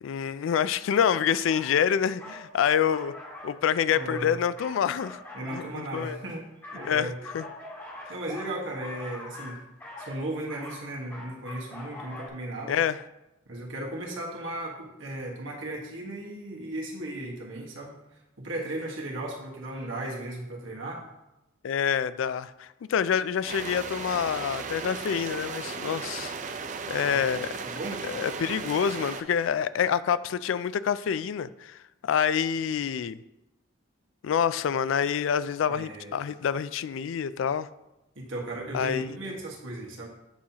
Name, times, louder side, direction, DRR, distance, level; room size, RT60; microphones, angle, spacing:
voice 1, 0.0-3.1 3.4-5.2 5.5-6.2 6.8-7.5 12.7-13.0 21.6-26.3 26.9-27.5 28.0-33.2 34.2-37.7 38.7-39.2, left 8 dB, 75° left, 15 dB, 0.3 m, -27 dB
sound 1, 1.4-1.7 2.2-2.5 2.9-3.6 3.9-6.2 6.6-12.3, left 2 dB, 10° left, 1.9 m, -43 dB
voice 2, 3.9-4.3 5.3-6.5 6.7-7.2 8.1-9.6 10.0-12.8 13.5-18.0 18.4-21.1 27.1-27.2 27.6-28.0 35.7-36.1 38.1-40.1, right 1 dB, 70° right, -2 dB, 1.5 m, -36 dB
sound 2, 23.5-29.2, right 5 dB, 40° right, 0.4 m, -36 dB
8.6 x 5.6 x 2.9 m, 0.94 s
head